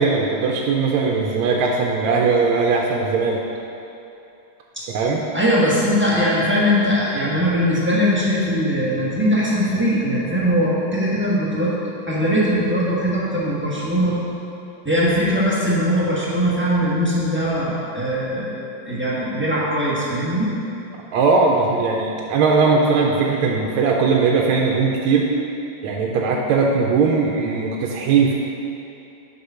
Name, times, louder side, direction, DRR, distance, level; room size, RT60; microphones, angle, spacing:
voice 1, 0.0-3.4 4.9-5.2 20.9-25.3 25.8-28.3, right 4 dB, 80° right, 0 dB, 1.4 m, -19 dB
voice 2, 5.3-11.7 12.1-14.2 14.8-18.5 18.8-20.5, equal, 5° right, -8 dB, 1.0 m, -20 dB
6.6 x 4.8 x 5.6 m, 2.8 s
omnidirectional pair, 2.2 m